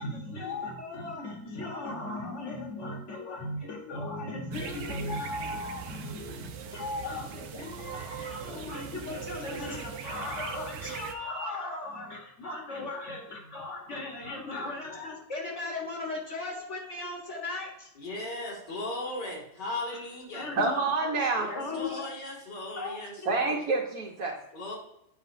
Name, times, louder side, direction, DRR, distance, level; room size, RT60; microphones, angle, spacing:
voice 1, 0.0-17.9 20.3-20.9 21.5-22.1 22.8-23.3, left 2 dB, 45° left, 0 dB, 1.7 m, -37 dB
sound 1, 4.5-11.1, right 7 dB, 85° right, 1.3 m, -40 dB
voice 2, 18.0-20.5 21.4-23.5 24.5-24.7, left 2 dB, 85° left, -3 dB, 3.0 m, -37 dB
voice 3, 20.5-21.5 23.3-24.3, right 3 dB, 65° right, -2 dB, 1.5 m, -27 dB
8.6 x 5.5 x 2.7 m, 0.80 s
omnidirectional pair, 1.8 m